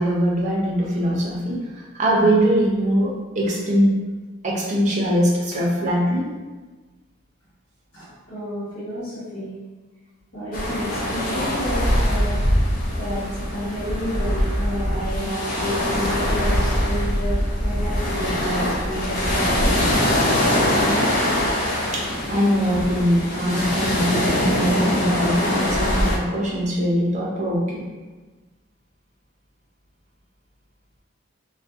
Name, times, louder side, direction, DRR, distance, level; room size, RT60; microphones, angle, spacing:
voice 1, 0.0-4.0 4.4-6.3 21.9-27.8, equal, 35° right, -4 dB, 0.5 m, -22 dB
voice 2, 7.9-9.5 10.3-12.4 13.0-19.8, equal, 75° left, -13 dB, 1.2 m, -30 dB
sound 1, 10.5-26.2, left 1 dB, 40° left, 0.4 m, -22 dB
2.6 x 2.1 x 2.3 m, 1.3 s
head